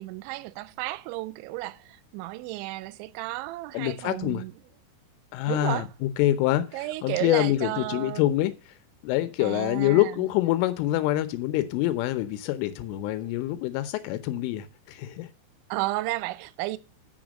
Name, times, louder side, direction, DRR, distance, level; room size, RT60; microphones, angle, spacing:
voice 1, 0.0-4.5 5.5-5.9 6.7-8.3 9.4-10.3 15.7-16.8, right 19 dB, 80° right, 2.8 m, -33 dB
voice 2, 3.7-4.4 5.3-6.7 7.0-8.5 9.0-15.3, left 15 dB, 90° left, 3.4 m, -26 dB
8.2 x 6.2 x 6.1 m
omnidirectional pair, 5.6 m